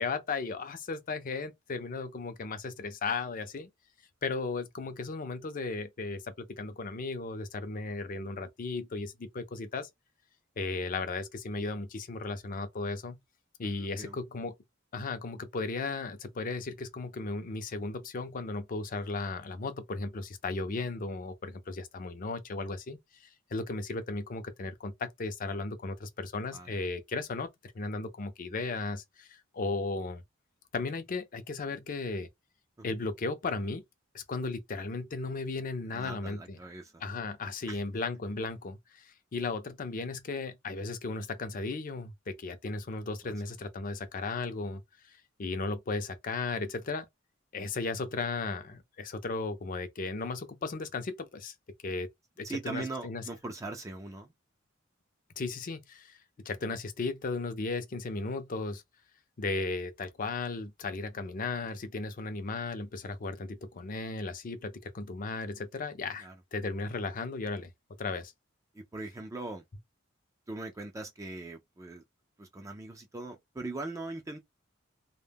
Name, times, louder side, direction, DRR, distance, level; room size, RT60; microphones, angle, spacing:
voice 1, 0.0-3.7 4.2-9.9 10.6-13.2 13.6-14.5 14.9-27.5 27.7-30.2 30.7-32.3 32.8-33.8 34.1-36.6 37.0-47.1 47.5-51.5 51.8-52.1 52.4-53.2 55.4-56.2 56.5-58.8 59.4-67.7 68.0-68.3, left 3 dB, 45° left, 0.5 m, -35 dB
voice 2, 13.7-14.2 26.5-26.8 32.8-32.9 35.8-37.0 37.7-37.8 43.2-43.3 52.4-54.3 66.2-66.4 68.7-69.6 70.5-72.0 72.4-74.4, right 2 dB, 15° right, 0.3 m, -41 dB
2.1 x 2.1 x 3.3 m
head